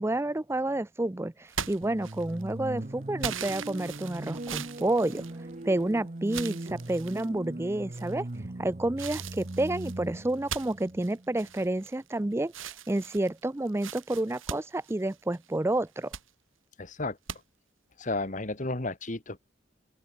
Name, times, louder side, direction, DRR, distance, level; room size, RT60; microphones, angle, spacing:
voice 1, 0.0-5.2 5.6-8.3 8.6-12.5 12.9-16.1, right 1 dB, 15° right, 0.4 m, -29 dB
sound 1, 1.5-2.5 3.2-5.8 6.3-7.3 7.9-8.4 9.0-12.1 12.5-15.5 15.9-16.3 17.3-17.4, right 7 dB, 85° right, 5.2 m, -40 dB
sound 2, 1.8-11.7, right 1 dB, 35° right, 0.9 m, -40 dB
voice 2, 16.8-17.2 18.0-19.4, left 2 dB, 40° left, 1.6 m, -33 dB
open air
head